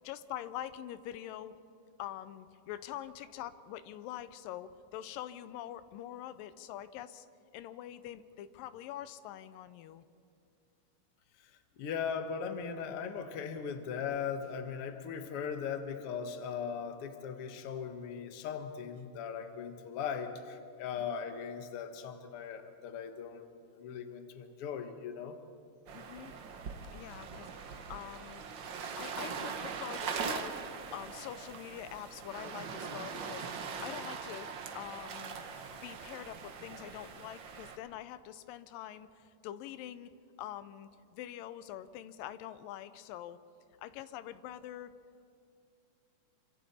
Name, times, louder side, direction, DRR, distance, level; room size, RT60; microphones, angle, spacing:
voice 1, 0.0-1.6 2.0-7.3 7.5-10.0 21.1-21.3 25.9-26.3 26.9-28.5 29.0-30.6 30.9-35.4 35.8-40.1 40.4-43.4 43.8-44.9, left 12 dB, 85° left, 13 dB, 2.4 m, -45 dB
voice 2, 11.4-23.5 23.8-25.4, left 7 dB, 55° left, 7 dB, 1.8 m, -39 dB
sound 1, 25.9-37.8, right 6 dB, 75° right, 1.0 m, -41 dB
27.0 x 25.5 x 4.3 m, 2.4 s
omnidirectional pair, 3.9 m